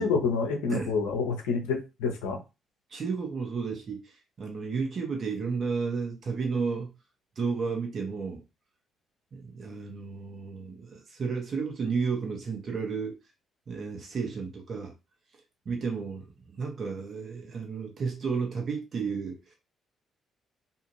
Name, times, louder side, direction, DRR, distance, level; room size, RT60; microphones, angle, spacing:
voice 1, 0.0-2.4, left 4 dB, 75° left, 0.7 m, -28 dB
voice 2, 2.9-6.9 7.4-8.4 9.3-13.1 13.7-14.9 15.6-19.5, right 5 dB, 50° right, 1.0 m, -32 dB
2.7 x 2.5 x 2.9 m
hypercardioid pair, 45°, 0 cm